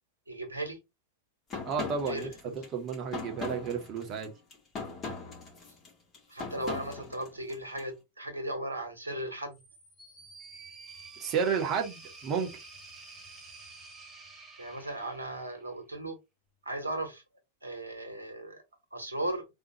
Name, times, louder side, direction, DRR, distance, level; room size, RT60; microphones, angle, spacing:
voice 1, 0.3-0.8 2.1-2.6 6.3-9.6 14.6-16.2 16.6-17.2 17.6-18.6 18.9-19.5, right 1 dB, 80° right, 1.2 m, -36 dB
sound 1, 1.5-7.8, left 4 dB, 25° left, 1.9 m, -40 dB
voice 2, 1.7-2.3 2.5-4.3 11.2-12.5, right 6 dB, 35° right, 1.1 m, -31 dB
sound 2, 9.5-15.7, right 3 dB, 15° right, 1.7 m, -50 dB
3.7 x 2.8 x 2.8 m
figure-of-eight pair, 90°, 0 cm